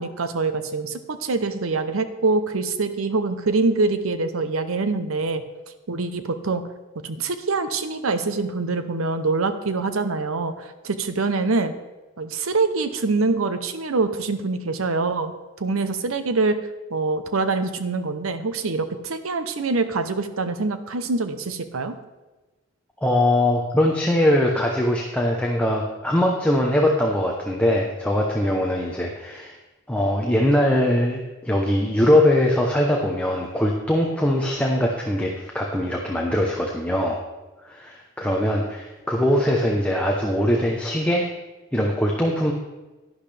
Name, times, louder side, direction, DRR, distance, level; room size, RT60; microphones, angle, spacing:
voice 1, 0.0-5.4 5.9-6.6 7.0-11.7 12.2-15.3 15.6-16.6 16.9-22.0, right 3 dB, 85° right, 10 dB, 0.8 m, -24 dB
voice 2, 23.0-29.6 29.9-37.2 37.6-41.3 41.7-42.5, left 1 dB, 5° left, -1 dB, 0.8 m, -21 dB
11.5 x 10.5 x 3.4 m, 1.1 s
head